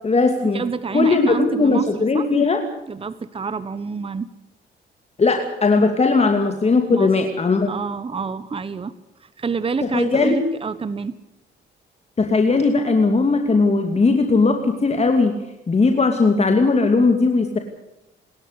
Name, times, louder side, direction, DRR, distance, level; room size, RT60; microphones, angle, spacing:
voice 1, 0.0-0.6 0.9-2.6 5.2-7.7 9.9-10.4 12.2-15.3 15.7-17.6, left 3 dB, 30° left, 5 dB, 2.7 m, -18 dB
voice 2, 0.5-2.3 2.9-4.3 6.9-7.1 7.7-8.9 9.2-11.1, right 5 dB, 30° right, 13 dB, 1.1 m, -27 dB
28.0 x 13.0 x 8.3 m, 0.88 s
cardioid pair, 90°, 20 cm